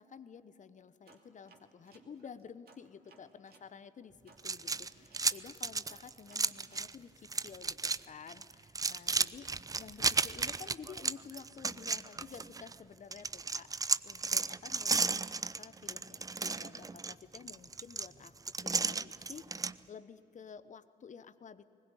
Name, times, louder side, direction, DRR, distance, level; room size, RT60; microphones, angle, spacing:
voice 1, 0.0-9.5 9.8-18.3 18.6-21.6, left 6 dB, 35° left, 14 dB, 1.0 m, -51 dB
sound 1, 1.1-3.7 4.3-6.9, right 4 dB, 45° right, 2.8 m, -63 dB
sound 2, 4.4-6.9 7.2-8.0 8.3-12.7 13.1-19.7, right 4 dB, 15° right, 0.6 m, -34 dB
21.0 x 20.0 x 9.0 m, 2.8 s
hypercardioid pair, 50°, 21 cm